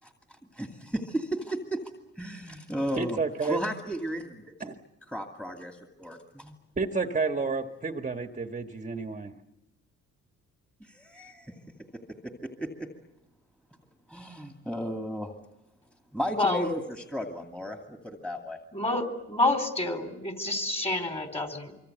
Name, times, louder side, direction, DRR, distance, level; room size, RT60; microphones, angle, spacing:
voice 1, 0.0-1.8 2.2-4.7 5.1-6.6 10.8-11.6 11.9-12.9 14.1-15.3 16.1-18.6, equal, 5° left, 3 dB, 2.4 m, -35 dB
voice 2, 3.0-3.6 4.6-4.7 6.8-9.3, right 4 dB, 25° right, 5 dB, 1.4 m, -30 dB
voice 3, 16.3-16.6 18.7-21.7, left 2 dB, 20° left, 6 dB, 3.9 m, -28 dB
25.0 x 24.5 x 8.0 m, 0.92 s
cardioid pair, 90°, 30 cm